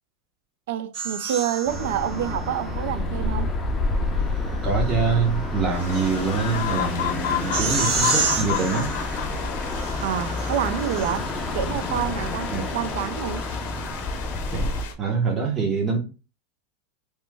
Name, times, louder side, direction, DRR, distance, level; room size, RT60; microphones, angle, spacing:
voice 1, 0.7-3.5 10.0-13.4, right 10 dB, 70° right, 0.4 m, -28 dB
sound 1, 0.9-2.9 4.3-11.5, right 4 dB, 50° right, 0.7 m, -31 dB
sound 2, 1.7-14.8, left 2 dB, 15° left, 0.5 m, -29 dB
voice 2, 4.6-8.9 12.5-12.7 14.5-14.7 15.0-16.0, right 5 dB, 20° right, 0.8 m, -25 dB
sound 3, 5.7-14.9, left 10 dB, 65° left, 0.6 m, -33 dB
3.0 x 2.1 x 3.3 m
supercardioid pair, 145°, 0 cm